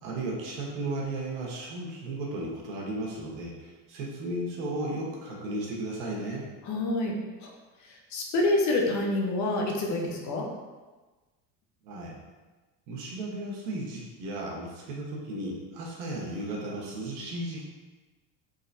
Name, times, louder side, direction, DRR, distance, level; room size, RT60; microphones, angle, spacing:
voice 1, 0.0-6.4 11.8-12.2 12.9-17.6, right 2 dB, 75° right, -3 dB, 1.1 m, -35 dB
voice 2, 6.6-7.5 8.1-10.5, left 2 dB, 45° left, 0 dB, 0.8 m, -27 dB
3.9 x 3.2 x 2.7 m, 1.3 s
supercardioid pair, 125°, 40 cm